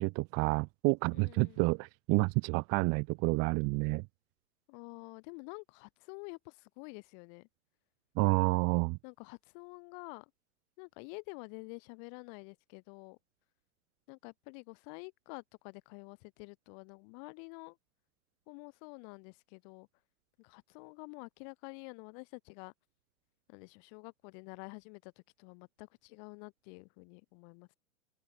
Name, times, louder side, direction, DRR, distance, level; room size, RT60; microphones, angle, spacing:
voice 1, 0.0-4.0 8.2-9.0, right 31 dB, 35° right, 1.1 m, -29 dB
voice 2, 1.1-1.6 4.7-7.5 9.0-10.3 10.8-13.2 14.1-17.8 18.5-19.9 20.4-22.7 23.5-25.1 25.4-27.8, left 40 dB or more, 40° left, 4.1 m, -49 dB
open air
hypercardioid pair, 115°, 41 cm